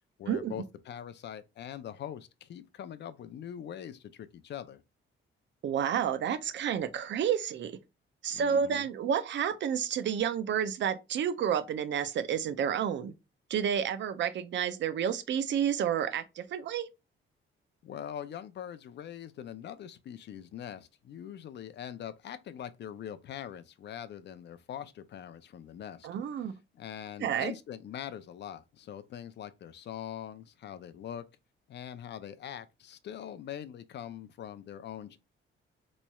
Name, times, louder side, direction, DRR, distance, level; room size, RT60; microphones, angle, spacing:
voice 1, 0.2-4.8 8.3-8.9 17.8-26.1 26.7-31.2 31.7-35.2, left 9 dB, 55° left, 0.5 m, -42 dB
voice 2, 5.6-7.8 8.2-13.1 13.5-16.9 26.0-26.5 27.2-27.5, right 8 dB, 60° right, 0.5 m, -30 dB
4.1 x 3.1 x 2.2 m
wide cardioid pair, 160°, 21 cm